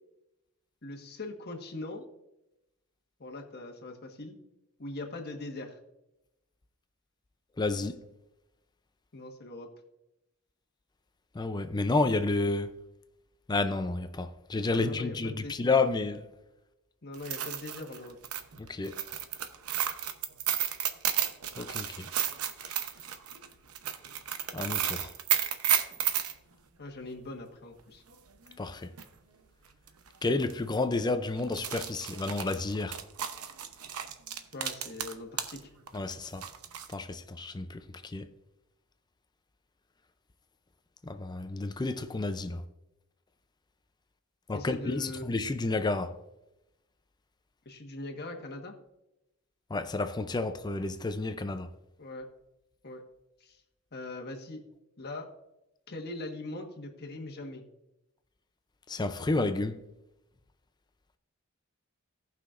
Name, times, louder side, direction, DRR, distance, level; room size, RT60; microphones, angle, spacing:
voice 1, 0.8-2.0 3.2-4.4 4.8-5.8 9.1-9.7 14.8-15.6 17.0-18.2 26.8-28.0 34.5-35.7 44.5-45.2 47.6-48.7 52.0-52.3 52.8-53.0 53.4-53.6 53.9-54.6 55.0-55.3 55.9-57.6, left 2 dB, 50° left, 1.4 m, -41 dB
voice 2, 7.6-8.0 11.3-12.7 13.5-16.3 18.6-19.0 21.6-22.1 24.5-25.1 28.6-28.9 30.2-33.0 35.9-36.5 36.9-38.3 41.0-42.6 44.5-46.1 49.7-51.7 58.9-59.8, left 3 dB, 20° left, 0.4 m, -30 dB
sound 1, 17.1-26.3 28.5-28.6 29.0-29.1 29.9-30.1 30.4-30.5 31.4-35.6 35.9-36.9, right 10 dB, 90° right, 0.8 m, -32 dB
17.5 x 5.9 x 2.5 m
head